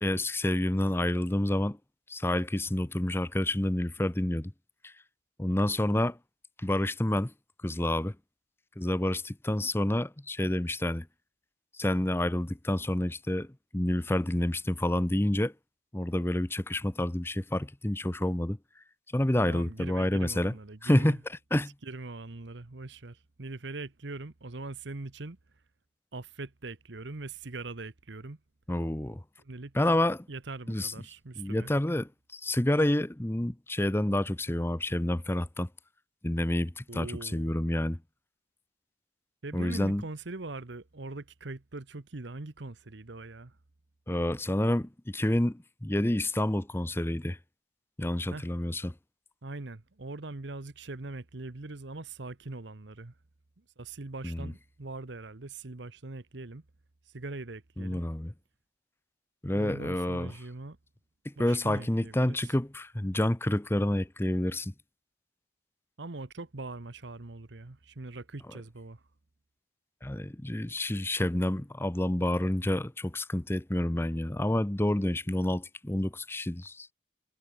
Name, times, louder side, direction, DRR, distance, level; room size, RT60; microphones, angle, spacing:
voice 1, 0.0-1.8 2.1-4.5 4.8-4.9 5.4-6.2 6.6-7.3 7.6-8.2 8.8-11.1 11.7-13.5 13.7-15.5 15.9-18.6 19.1-20.5 20.8-21.7 28.7-29.2 29.7-30.3 30.7-30.9 31.4-35.7 36.2-38.0 39.5-40.0 44.1-47.4 48.0-48.9 54.2-54.5 57.8-58.3 59.4-60.3 61.2-64.7 70.0-76.9, left 1 dB, 10° left, 0.7 m, -28 dB
voice 2, 19.4-21.2 21.8-25.4 26.1-28.4 29.4-29.7 30.3-31.7 36.9-37.6 39.4-43.5 48.3-48.5 49.4-53.1 53.6-56.6 57.1-58.0 59.5-60.8 61.4-62.4 66.0-69.0, right 2 dB, 70° right, 1.1 m, -42 dB
head